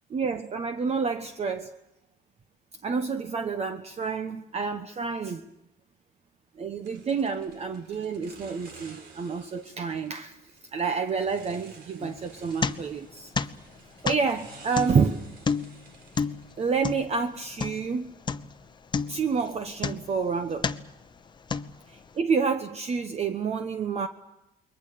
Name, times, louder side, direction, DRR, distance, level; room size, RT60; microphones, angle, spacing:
voice 1, 0.1-1.7 2.8-5.4 6.6-10.4 10.7-13.3 14.0-15.2 16.6-18.1 19.1-20.7 21.9-24.1, right 5 dB, 40° right, 1.2 m, -28 dB
sound 1, 6.8-16.9, right 4 dB, 75° right, 3.9 m, -52 dB
sound 2, 12.0-13.1 13.4-18.0 18.3-18.6 18.9-20.2 20.6-21.0 21.5-22.1, left 5 dB, 25° left, 0.9 m, -31 dB
28.0 x 22.5 x 6.8 m
cardioid pair, 110°, 17 cm